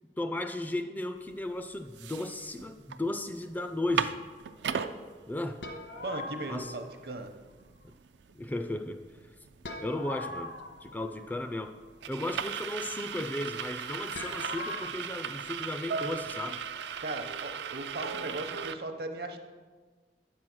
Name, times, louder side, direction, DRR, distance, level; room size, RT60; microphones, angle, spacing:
voice 1, 0.2-4.2 5.3-5.6 6.5-6.7 8.3-9.0 9.8-10.5 10.8-11.8 12.1-16.6, left 1 dB, 10° left, 7 dB, 0.3 m, -35 dB
sound 1, 1.3-1.4 1.8-3.0 3.3-3.4 3.7-4.9 5.5-5.6 5.9-18.7, right 7 dB, 80° right, 0.4 m, -37 dB
sound 2, 5.6-6.9 9.6-11.6 14.1-14.9, left 2 dB, 80° left, 1.2 m, -41 dB
voice 2, 6.0-7.3 17.0-19.4, right 2 dB, 60° right, 6 dB, 0.9 m, -38 dB
9.1 x 6.1 x 6.1 m, 1.4 s
head